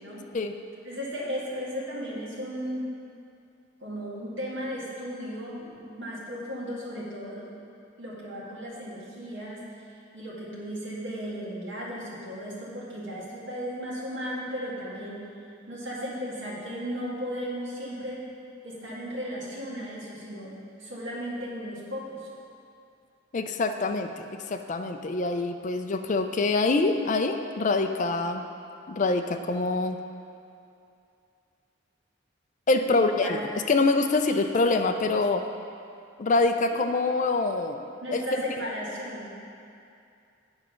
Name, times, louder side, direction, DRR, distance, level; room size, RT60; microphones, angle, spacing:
voice 1, 0.8-2.9 3.8-7.5 8.0-9.6 10.1-15.2 15.7-18.2 18.6-20.5 20.8-22.3 32.9-33.3 34.3-34.4 38.0-39.2, equal, 60° right, -6 dB, 2.0 m, -35 dB
voice 2, 23.3-28.5 28.9-30.0 32.7-33.4 33.7-35.4 36.2-37.8 38.1-38.2, left 3 dB, 40° left, 7 dB, 0.4 m, -25 dB
8.9 x 5.0 x 5.7 m, 2.6 s
head